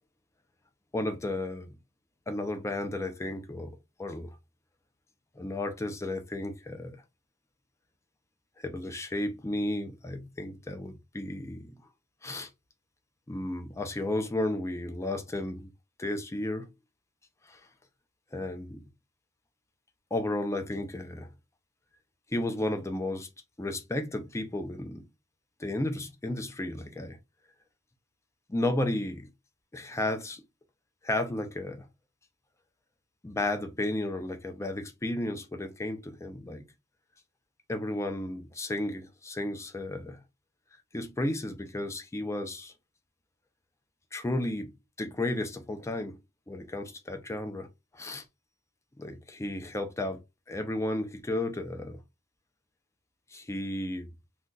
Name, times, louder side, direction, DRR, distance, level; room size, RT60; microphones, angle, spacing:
voice 1, 0.9-1.7 2.3-4.4 5.4-7.0 8.6-11.8 12.2-12.5 13.3-15.7 16.0-16.7 17.5-17.6 18.3-18.9 20.1-21.3 22.3-23.3 23.6-25.1 25.6-27.2 28.5-29.3 29.7-30.4 31.0-31.9 33.2-36.6 37.7-40.2 40.9-42.7 44.1-46.2 46.5-47.7 47.9-48.2 49.0-50.2 50.5-52.0 53.3-54.1, left 1 dB, 15° left, 0.5 m, -33 dB
2.4 x 2.3 x 3.8 m
head